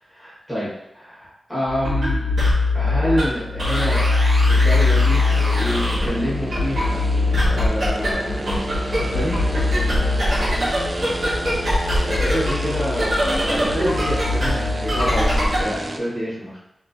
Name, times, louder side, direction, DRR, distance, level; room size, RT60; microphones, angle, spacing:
voice 1, 0.1-2.2 2.7-4.0 4.5-7.0 7.5-8.3 9.0-9.4 11.4-11.6 12.0-16.6, equal, 5° left, -12 dB, 1.5 m, -27 dB
sound 1, 1.7-15.7, left 2 dB, 70° right, 1.4 m, -21 dB
sound 2, 5.2-16.0, right 1 dB, 30° right, 0.3 m, -30 dB
3.1 x 3.0 x 2.6 m, 0.85 s
wide cardioid pair, 130°, 0 cm